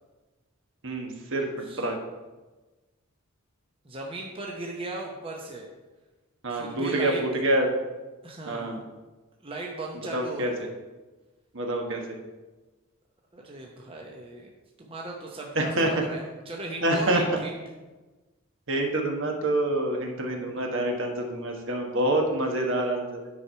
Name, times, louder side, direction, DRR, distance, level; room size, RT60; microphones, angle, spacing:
voice 1, 0.8-1.5 1.8-2.0 6.4-7.7 8.5-8.8 9.9-10.5 11.5-12.2 15.5-16.0 16.8-17.2 18.7-23.3, right 1 dB, 60° right, 2 dB, 1.4 m, -26 dB
voice 2, 3.8-5.7 6.5-7.2 8.2-8.8 9.4-10.7 13.3-14.5 14.8-17.5, right 2 dB, 25° right, -1 dB, 0.8 m, -37 dB
9.7 x 4.6 x 5.7 m, 1.2 s
head